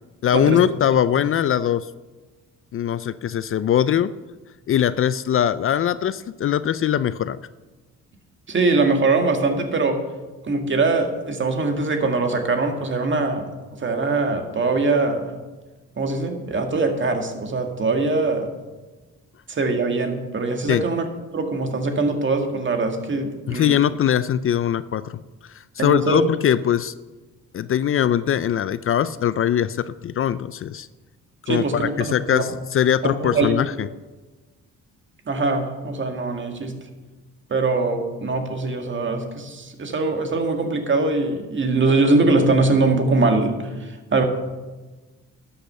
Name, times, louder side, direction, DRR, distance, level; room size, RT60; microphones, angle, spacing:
voice 1, 0.2-1.9 2.7-4.1 4.7-7.4 20.7-20.8 23.5-25.2 25.8-26.9 27.5-30.9 31.5-33.9, left 10 dB, 45° left, 15 dB, 0.4 m, -21 dB
voice 2, 8.5-10.0 10.4-15.3 16.0-18.5 19.5-21.1 21.3-23.8 25.8-26.2 31.5-32.5 33.0-33.6 35.3-36.8 37.5-44.2, right 3 dB, 40° right, 5 dB, 1.9 m, -22 dB
12.0 x 8.0 x 6.7 m, 1.2 s
cardioid pair, 90°, 30 cm